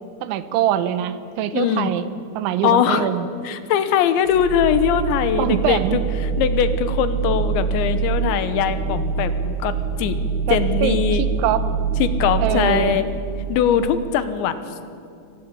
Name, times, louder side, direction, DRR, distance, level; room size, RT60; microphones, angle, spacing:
voice 1, 0.2-2.1 2.3-3.3 5.4-6.0 10.5-11.6 12.4-13.0, right 10 dB, 85° right, 12 dB, 3.4 m, -23 dB
voice 2, 1.5-1.9 2.6-3.1 3.4-6.0 6.4-10.2 10.5-11.3 12.0-13.1 13.5-14.6, left 9 dB, 75° left, 11 dB, 3.3 m, -21 dB
sound 1, 4.3-13.9, right 5 dB, 70° right, 2.9 m, -25 dB
24.5 x 19.5 x 8.6 m, 2.5 s
omnidirectional pair, 5.4 m